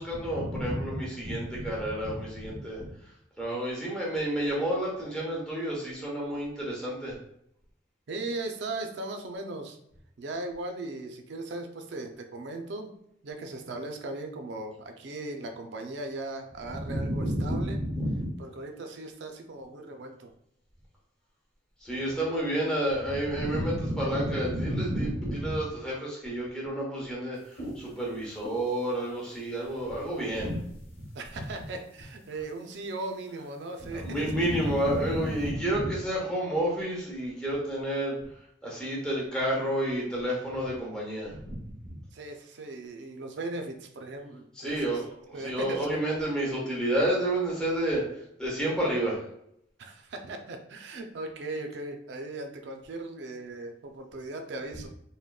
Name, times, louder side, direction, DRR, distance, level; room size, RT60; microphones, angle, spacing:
voice 1, 0.0-2.9 3.4-7.1 16.6-18.3 21.8-30.6 33.9-38.2 38.6-41.6 41.8-41.9 44.5-48.0 48.4-49.2, right 1 dB, 5° left, -5 dB, 0.8 m, -30 dB
voice 2, 8.1-9.8 10.2-12.9 13.2-17.8 18.4-20.3 31.1-34.3 42.1-45.0 45.3-46.0 49.8-54.9, right 2 dB, 65° right, 5 dB, 0.4 m, -38 dB
sound 1, 27.3-35.5, right 1 dB, 50° left, 1.2 m, -50 dB
3.5 x 2.1 x 2.3 m, 0.74 s
head